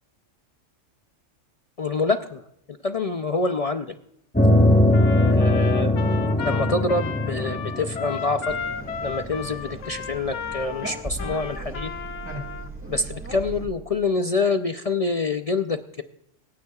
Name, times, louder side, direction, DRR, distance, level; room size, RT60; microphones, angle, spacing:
voice 1, 1.8-2.4 2.7-4.0 5.2-6.0 6.4-8.5 9.0-11.9 12.9-16.0, left 3 dB, 50° left, 8 dB, 0.4 m, -26 dB
sound 1, 4.3-9.2, left 1 dB, 10° left, 1.1 m, -21 dB
Trumpet, 4.9-12.7, left 6 dB, 70° left, 1.0 m, -34 dB
sound 2, 8.5-13.7, right 1 dB, 10° right, 1.6 m, -37 dB
26.0 x 9.5 x 2.4 m, 0.78 s
omnidirectional pair, 1.3 m